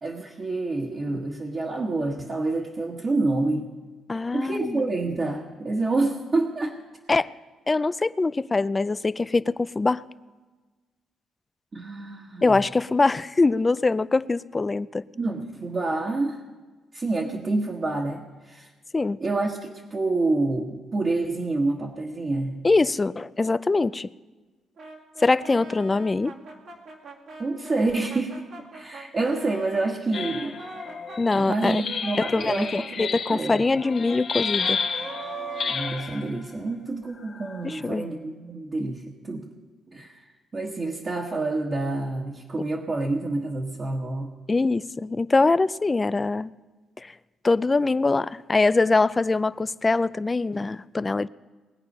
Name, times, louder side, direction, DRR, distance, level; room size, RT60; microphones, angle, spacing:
voice 1, 0.0-3.7 4.3-6.7 11.7-12.6 15.1-16.4 16.9-18.7 19.2-22.6 27.4-30.6 31.3-32.7 33.0-33.6 35.7-39.5 39.9-40.3 40.5-44.3, right 2 dB, 35° right, -1 dB, 1.5 m, -28 dB
voice 2, 4.1-4.9 7.1-7.3 7.7-10.0 12.4-15.0 18.9-19.2 22.6-24.1 25.2-26.3 31.2-31.8 32.2-34.8 37.6-38.1 44.5-46.5 47.0-47.1 47.4-51.3, left 3 dB, 25° left, 16 dB, 0.4 m, -23 dB
Brass instrument, 24.8-29.9 30.4-36.7, right 4 dB, 65° right, 2.2 m, -42 dB
sound 1, 30.1-36.3 37.2-37.8, left 5 dB, 50° left, 1.1 m, -32 dB
20.0 x 8.5 x 5.5 m, 1.3 s
cardioid pair, 90°, 0 cm